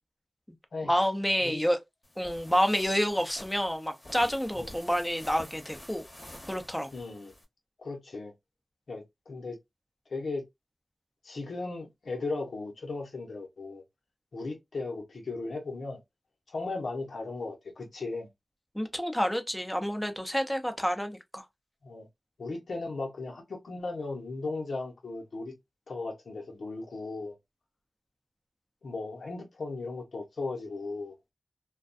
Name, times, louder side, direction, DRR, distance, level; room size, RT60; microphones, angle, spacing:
voice 1, 0.9-1.8 2.2-6.0 6.5-6.9 18.7-21.4, equal, 5° left, 0.7 m, -28 dB
sound 1, 2.0-7.4, left 1 dB, 30° left, 1.0 m, -48 dB
voice 2, 6.9-7.3 7.8-8.3 8.9-9.6 10.1-10.4 11.2-13.8 14.3-16.0 16.5-18.3 21.8-22.1 22.4-25.5 25.9-27.3 28.8-31.1, left 3 dB, 85° left, 0.8 m, -36 dB
2.3 x 2.2 x 2.5 m
cardioid pair, 40°, 0 cm